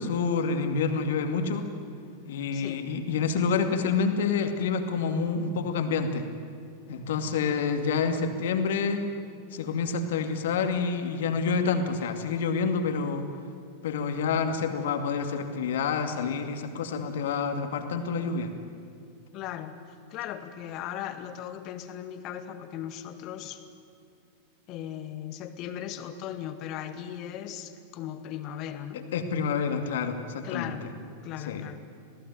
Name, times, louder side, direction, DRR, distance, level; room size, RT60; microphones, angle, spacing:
voice 1, 0.0-1.7 2.3-6.3 6.9-9.0 9.5-13.3 13.8-18.5 29.1-30.7 31.5-31.6, left 5 dB, 60° left, 7 dB, 2.4 m, -28 dB
voice 2, 19.3-19.7 20.1-23.6 24.7-29.1 30.4-30.8 31.2-31.8, left 10 dB, 40° left, 9 dB, 1.9 m, -37 dB
26.5 x 18.0 x 9.4 m, 2.4 s
figure-of-eight pair, 90°, 0 cm